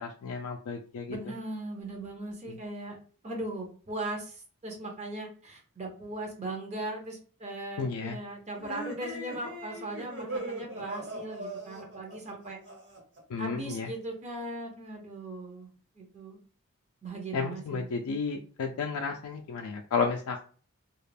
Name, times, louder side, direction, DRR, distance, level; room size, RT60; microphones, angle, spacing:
voice 1, 0.0-1.2 2.5-2.6 7.8-8.2 13.3-13.9 17.3-20.4, left 5 dB, 75° left, 3 dB, 0.3 m, -32 dB
voice 2, 1.1-3.0 3.2-12.6 13.4-15.7 16.0-16.4 17.0-17.9, right 2 dB, 30° right, 2 dB, 0.5 m, -38 dB
sound 1, 8.6-13.2, right 1 dB, 55° right, 0.9 m, -39 dB
2.3 x 2.1 x 3.2 m, 0.43 s
head